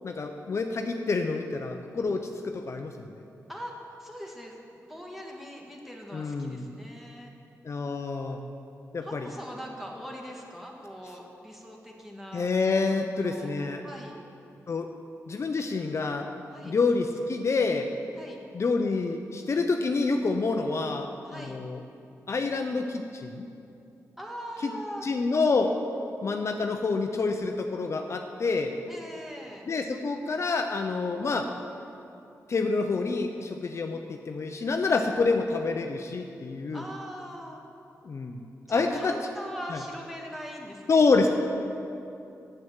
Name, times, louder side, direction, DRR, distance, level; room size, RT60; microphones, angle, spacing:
voice 1, 0.0-3.2 6.1-6.7 7.6-8.4 8.9-9.3 12.3-13.8 14.7-14.9 15.3-16.3 16.6-17.9 18.5-21.8 22.3-23.5 24.6-24.7 25.0-25.7 26.2-28.8 29.7-31.5 32.5-36.8 38.0-38.4 38.7-39.2 39.7-39.8 40.9-41.3, left 4 dB, 50° left, 5 dB, 0.6 m, -27 dB
voice 2, 3.5-7.3 9.0-12.5 12.9-13.5 13.8-14.1 16.5-16.8 18.1-18.4 21.2-21.6 24.2-25.1 28.9-29.7 36.7-37.6 38.7-41.0, equal, 5° right, -1 dB, 1.8 m, -41 dB
7.8 x 7.7 x 7.3 m, 2.7 s
cardioid pair, 70°, 6 cm